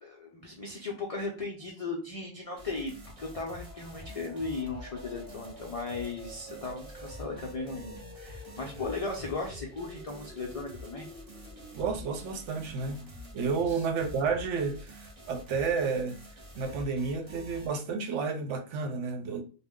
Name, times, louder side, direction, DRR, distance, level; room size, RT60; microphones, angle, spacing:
voice 1, 0.0-11.1 13.7-13.8, left 3 dB, 70° left, 0.3 m, -37 dB
sound 1, 2.6-17.7, equal, 35° right, 0.7 m, -48 dB
sound 2, 3.1-14.7, equal, ahead, 1.1 m, -50 dB
voice 2, 11.7-13.0 13.3-16.2 16.5-19.4, right 5 dB, 70° right, 0.9 m, -31 dB
2.4 x 2.1 x 3.5 m
omnidirectional pair, 1.3 m